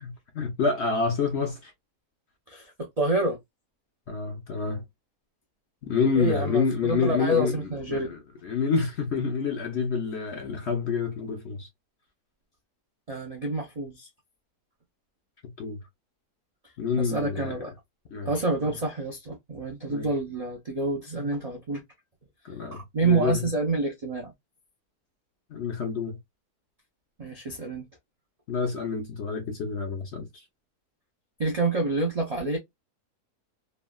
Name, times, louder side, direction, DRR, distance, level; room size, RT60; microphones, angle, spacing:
voice 1, 0.0-1.7 4.1-4.8 5.8-7.6 7.9-11.7 15.6-15.8 16.8-17.6 18.1-18.3 19.9-20.1 21.2-21.3 22.4-23.4 25.5-26.2 28.5-30.4, left 5 dB, 60° left, 0.7 m, -28 dB
voice 2, 2.5-3.4 6.1-8.1 13.1-14.1 17.0-17.7 18.2-21.8 22.7-24.3 27.2-27.8 31.4-32.6, right 2 dB, 70° right, 0.3 m, -28 dB
3.2 x 2.2 x 2.2 m
omnidirectional pair, 1.7 m